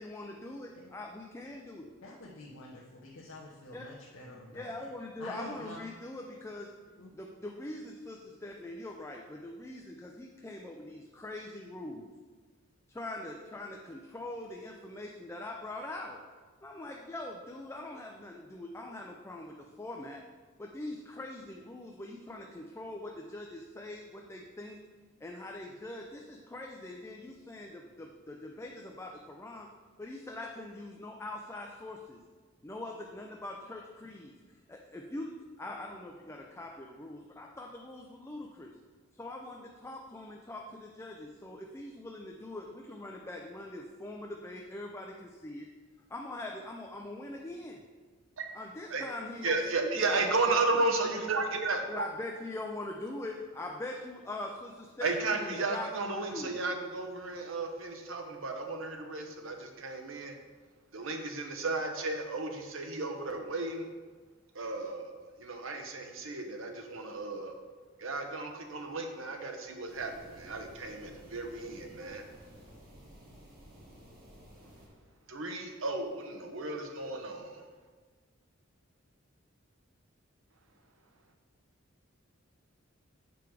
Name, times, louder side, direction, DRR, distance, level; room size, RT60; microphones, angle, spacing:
voice 1, 0.0-1.9 3.7-3.8 4.5-6.7 7.1-12.1 12.9-16.2 16.6-20.2 20.6-24.8 25.2-29.7 30.0-32.2 32.6-35.3 35.6-38.7 39.1-45.7 46.1-47.8 48.5-50.2 50.5-50.6 51.9-56.6, left 2 dB, 15° left, 1 dB, 0.4 m, -43 dB
voice 2, 2.0-4.9 5.2-5.8 7.0-7.1, left 2 dB, 75° left, -4 dB, 0.9 m, -47 dB
voice 3, 49.4-52.0 55.0-60.3 60.9-63.9 64.5-65.1 65.4-67.5 68.0-72.2 75.3-77.6, right 3 dB, 70° right, 4 dB, 0.9 m, -33 dB
sound 1, 69.9-74.9, equal, 50° right, 1.9 m, -54 dB
6.9 x 4.7 x 4.7 m, 1.4 s
head